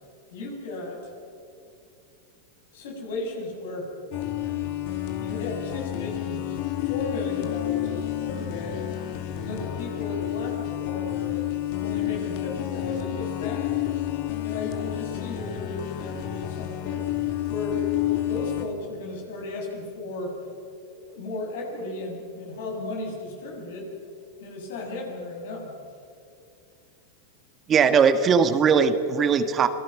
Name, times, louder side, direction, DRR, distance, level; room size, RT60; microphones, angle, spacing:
voice 1, 0.3-1.1 2.7-3.9 5.0-6.4 6.8-8.8 9.4-11.4 11.8-13.8 14.4-17.1 17.5-17.9 18.2-20.4 20.9-23.9 24.4-25.8, left 2 dB, 75° left, 0 dB, 7.6 m, -35 dB
sound 1, 4.1-18.6, left 13 dB, 55° left, 2.5 m, -30 dB
voice 2, 27.7-29.7, right 6 dB, 30° right, 10 dB, 1.6 m, -19 dB
27.0 x 20.0 x 6.1 m, 2.7 s
hypercardioid pair, 110°, 0 cm